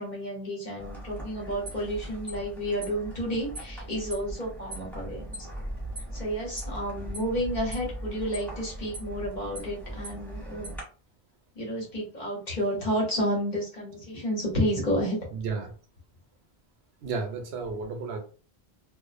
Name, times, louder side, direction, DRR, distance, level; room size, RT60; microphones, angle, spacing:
voice 1, 0.0-5.5 6.1-10.7 11.5-15.2, equal, 50° left, -3 dB, 1.1 m, -31 dB
sound 1, 0.8-10.8, right 1 dB, ahead, 1.0 m, -39 dB
voice 2, 15.3-15.7 17.0-18.2, right 4 dB, 85° right, 4 dB, 0.9 m, -32 dB
2.4 x 2.0 x 2.5 m, 0.37 s
omnidirectional pair, 1.0 m